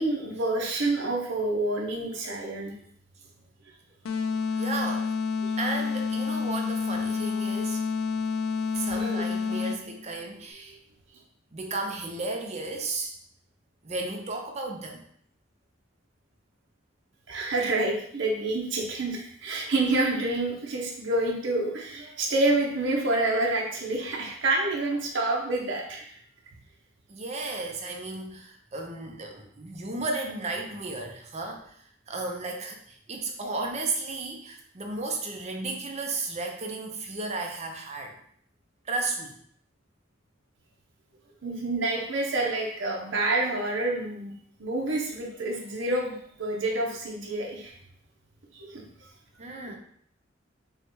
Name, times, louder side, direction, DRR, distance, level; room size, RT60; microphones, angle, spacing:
voice 1, 0.0-2.7 5.4-5.5 8.9-9.2 17.3-26.0 41.4-44.3 44.6-47.7 48.5-48.8, right 2 dB, 70° right, -1 dB, 0.8 m, -28 dB
sound 1, 4.0-10.0, left 5 dB, 85° left, 0.3 m, -29 dB
voice 2, 4.6-5.1 5.6-7.8 8.7-10.8 11.5-13.1 13.8-15.0 27.1-31.7 32.1-38.2 38.8-39.3 49.4-49.8, right 3 dB, 35° right, 2 dB, 0.6 m, -34 dB
5.4 x 2.3 x 3.1 m, 0.64 s
head